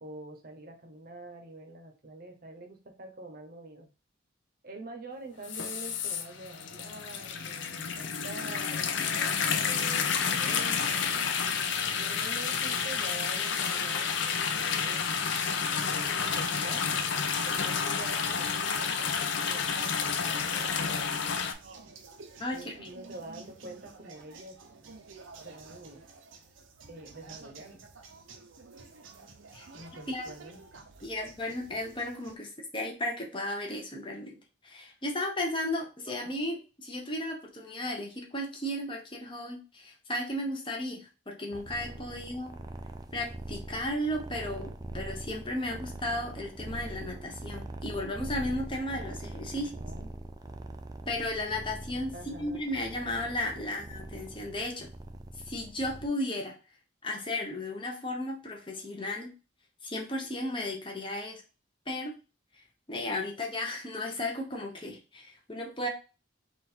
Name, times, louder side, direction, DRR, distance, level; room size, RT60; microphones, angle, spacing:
voice 1, 0.0-3.9 4.6-8.9 9.6-11.1 11.9-15.1 15.9-16.9 17.4-21.3 22.5-24.6 25.4-26.0 26.9-27.8 29.7-30.6 49.5-50.1 52.1-52.6, right 2 dB, 50° right, 4 dB, 0.8 m, -46 dB
sound 1, 5.4-21.5, left 6 dB, 70° left, 0.5 m, -30 dB
sound 2, 20.2-32.4, right 4 dB, 85° right, 0.7 m, -51 dB
voice 2, 22.4-22.9 29.5-29.7 30.1-30.2 31.0-34.4 34.6-42.5 43.1-49.7 51.1-54.9 55.5-56.5 57.0-59.3 59.8-61.4 61.9-62.1 62.9-65.9, left 1 dB, 25° left, 1 dB, 0.8 m, -34 dB
sound 3, 41.5-56.1, right 1 dB, 20° right, 0.3 m, -42 dB
3.8 x 2.5 x 4.2 m, 0.33 s
head